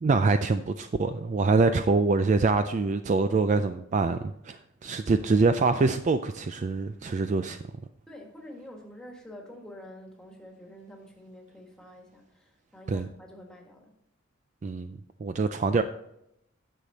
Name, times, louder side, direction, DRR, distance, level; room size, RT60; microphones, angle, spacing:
voice 1, 0.0-7.6 12.9-13.1 14.6-15.8, right 3 dB, 35° right, 9 dB, 0.3 m, -25 dB
voice 2, 8.1-13.9, equal, 5° left, 0 dB, 1.6 m, -47 dB
10.0 x 6.6 x 4.0 m, 0.80 s
head